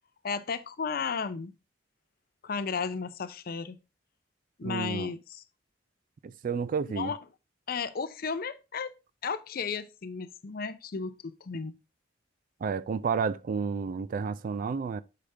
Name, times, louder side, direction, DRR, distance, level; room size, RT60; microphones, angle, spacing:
voice 1, 0.2-1.5 2.4-3.8 4.6-5.4 7.0-7.2 7.7-8.9 9.2-11.7, left 5 dB, 55° left, 0.5 m, -34 dB
voice 2, 4.6-5.1 6.2-7.1 12.6-15.0, right 5 dB, 45° right, 0.3 m, -31 dB
6.6 x 5.0 x 3.3 m
head